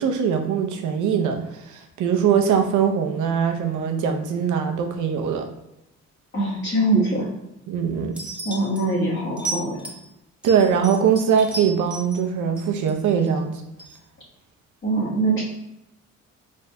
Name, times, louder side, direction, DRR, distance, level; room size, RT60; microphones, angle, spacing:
voice 1, 0.0-5.5 7.7-8.1 10.4-13.6, right 7 dB, 80° right, 4 dB, 0.7 m, -22 dB
voice 2, 6.3-7.3 8.4-9.9 14.8-15.4, right 2 dB, 40° left, -8 dB, 1.4 m, -23 dB
sound 1, 8.1-8.8 9.4-10.0 10.4-12.2 12.6-13.3 13.8-14.0, right 2 dB, 5° right, 1.3 m, -33 dB
4.1 x 3.5 x 2.2 m, 0.88 s
cardioid pair, 90°, 30 cm